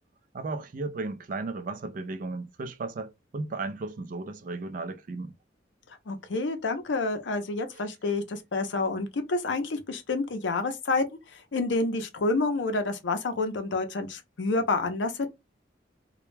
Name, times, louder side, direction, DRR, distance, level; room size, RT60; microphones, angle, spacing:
voice 1, 0.3-5.3 8.1-8.2, right 3 dB, 45° right, 0.4 m, -35 dB
voice 2, 6.1-11.0 11.3-15.3, left 3 dB, 85° left, 0.6 m, -28 dB
2.2 x 2.1 x 3.1 m
head